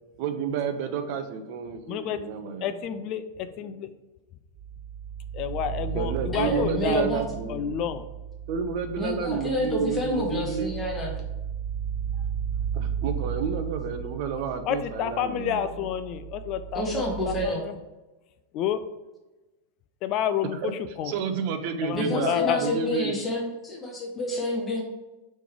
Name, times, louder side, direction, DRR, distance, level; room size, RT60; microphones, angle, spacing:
voice 1, 0.2-2.8 5.9-7.8 8.5-10.7 12.7-15.7 20.6-20.7 21.0-23.2, right 6 dB, 45° right, 7 dB, 0.5 m, -30 dB
voice 2, 1.9-2.2 2.6-3.9 5.3-7.1 7.5-8.0 14.7-17.8 18.5-18.8 20.0-21.1 21.8-22.6, left 9 dB, 40° left, 11 dB, 0.3 m, -29 dB
sound 1, 4.6-17.5, right 8 dB, 30° right, 1.3 m, -35 dB
voice 3, 6.3-7.2 9.0-11.1 16.7-17.6 21.9-24.8, left 1 dB, 15° left, -1 dB, 1.1 m, -28 dB
3.4 x 3.1 x 4.8 m, 1.1 s
figure-of-eight pair, 90°, 0 cm